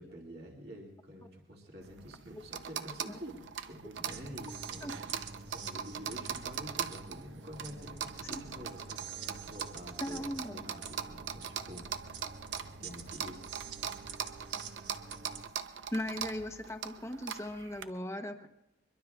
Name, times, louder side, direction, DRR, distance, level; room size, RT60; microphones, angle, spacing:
voice 1, 0.0-5.0 5.5-11.9 12.8-13.5, equal, 60° right, -2 dB, 2.3 m, -48 dB
sound 1, 1.8-17.8, right 8 dB, 90° right, 0.7 m, -41 dB
sound 2, 4.1-15.4, right 5 dB, 75° right, 1.3 m, -47 dB
voice 2, 10.0-10.6 15.9-18.5, left 1 dB, 15° left, 6 dB, 0.9 m, -38 dB
23.5 x 22.5 x 2.4 m, 0.92 s
head